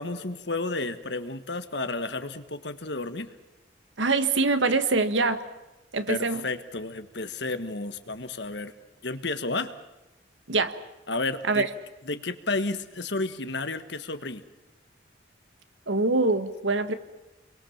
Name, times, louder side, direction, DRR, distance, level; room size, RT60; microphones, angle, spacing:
voice 1, 0.0-3.3 6.1-8.7 9.0-9.7 11.1-11.6 12.0-14.4, left 3 dB, 65° left, 10 dB, 1.6 m, -32 dB
voice 2, 4.0-5.4 5.9-6.5 10.5-10.7 11.5-11.7 15.9-16.9, right 3 dB, 80° right, 10 dB, 1.6 m, -24 dB
29.5 x 23.0 x 7.3 m, 0.98 s
head